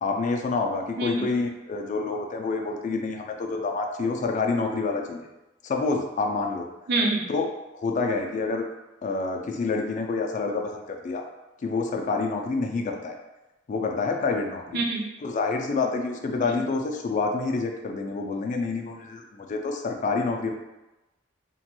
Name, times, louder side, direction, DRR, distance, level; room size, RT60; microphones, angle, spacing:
voice 1, 0.0-5.3 5.6-6.7 7.3-7.4 7.8-8.6 9.0-11.2 11.6-13.2 13.7-14.8 15.2-20.5, left 3 dB, 40° left, 3 dB, 0.3 m, -27 dB
voice 2, 1.0-1.3 6.9-7.3 14.7-15.1, right 2 dB, 60° right, 0 dB, 0.5 m, -25 dB
3.0 x 2.2 x 2.9 m, 1.0 s
head